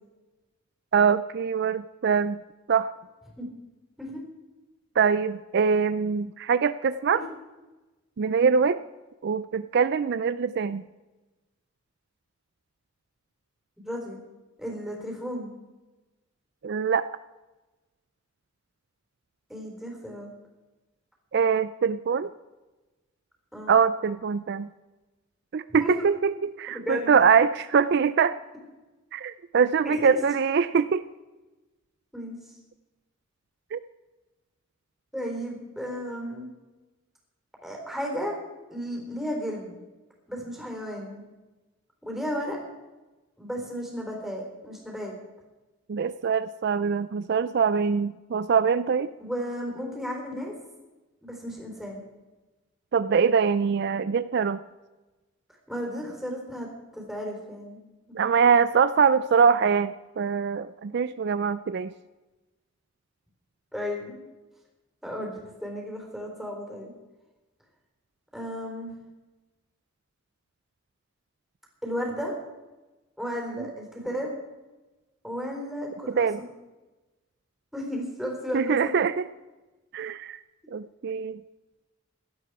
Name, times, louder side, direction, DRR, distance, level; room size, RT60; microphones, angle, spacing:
voice 1, 0.9-2.4 2.7-2.9 5.0-7.2 8.2-8.8 9.2-10.8 16.6-17.1 21.3-22.3 23.7-24.7 25.5-28.4 29.1-31.1 33.7-33.8 45.9-49.1 52.9-54.6 58.1-61.9 76.1-76.4 78.5-79.3 79.9-80.4 80.7-81.4, right 6 dB, 55° right, 14 dB, 0.4 m, -23 dB
voice 2, 13.8-14.2 14.6-15.5 19.5-20.3 23.5-23.8 25.8-26.0 26.7-27.2 29.8-30.2 32.1-32.5 35.1-36.5 37.6-38.3 38.7-39.8 40.3-41.2 42.0-42.6 43.4-45.1 49.2-50.5 51.2-52.0 55.7-56.7 56.9-57.8 63.7-64.2 65.0-65.3 65.6-66.9 68.3-68.9 71.8-72.3 73.2-74.3 75.2-76.5 77.7-79.0, equal, ahead, 0 dB, 3.9 m, -34 dB
16.5 x 12.0 x 4.8 m, 1.1 s
head